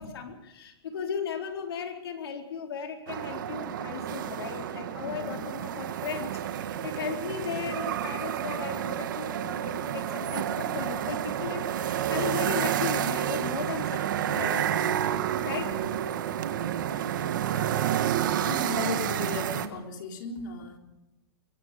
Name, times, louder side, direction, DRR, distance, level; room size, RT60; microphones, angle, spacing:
voice 1, 0.0-14.6 15.4-15.7 17.4-17.8, left 6 dB, 75° left, 3 dB, 4.2 m, -36 dB
sound 1, 3.1-19.7, right 10 dB, 50° right, 1.6 m, -30 dB
voice 2, 5.0-5.4 15.5-16.0 18.4-20.8, left 3 dB, 50° left, 3 dB, 4.0 m, -36 dB
23.5 x 21.5 x 5.2 m, 0.94 s
hypercardioid pair, 175°, 13 cm